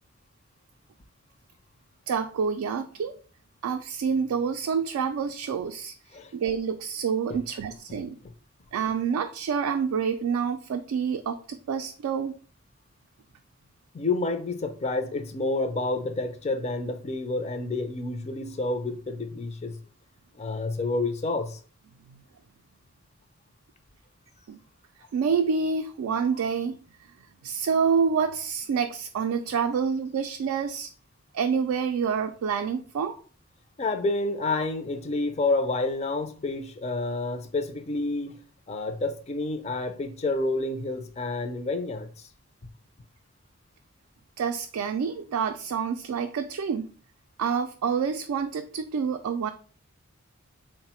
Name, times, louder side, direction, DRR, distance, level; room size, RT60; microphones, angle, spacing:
voice 1, 2.1-3.1 3.6-5.9 6.3-8.2 8.7-12.4 22.1-22.2 24.5-24.6 25.1-26.8 27.4-30.9 31.3-33.2 44.4-46.9 47.4-49.5, right 6 dB, 80° right, 0.3 m, -27 dB
voice 2, 13.9-19.8 20.4-21.6 33.8-38.4 38.7-42.3, left 2 dB, 30° left, 0.4 m, -29 dB
3.9 x 2.1 x 4.2 m
head